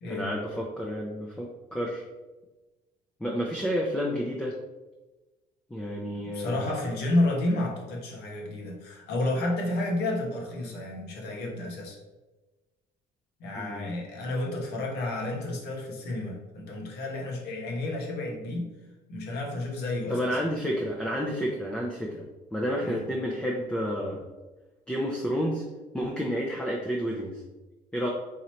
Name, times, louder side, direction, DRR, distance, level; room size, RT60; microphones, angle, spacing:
voice 1, 0.1-2.0 3.2-4.6 5.7-6.6 13.5-13.9 20.1-22.3 22.5-24.2 24.9-25.6 25.9-27.4 27.9-28.1, equal, 5° left, -1 dB, 0.6 m, -30 dB
voice 2, 6.3-12.0 13.4-18.7 19.1-20.4 22.8-23.0, left 2 dB, 75° left, -1 dB, 1.3 m, -31 dB
3.9 x 3.1 x 4.2 m, 1.2 s
cardioid pair, 110°, 17 cm